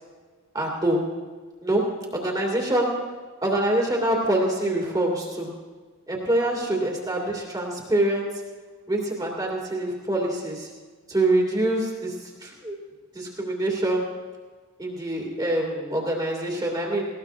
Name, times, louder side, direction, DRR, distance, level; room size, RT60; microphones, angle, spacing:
voice 1, 0.5-1.0 1.6-1.8 2.1-3.0 3.4-5.5 6.1-8.3 8.9-10.7 11.1-12.1 12.4-12.8 13.1-14.0 14.8-17.0, right 1 dB, 20° right, -1 dB, 2.0 m, -25 dB
19.0 x 17.5 x 2.5 m, 1.4 s
head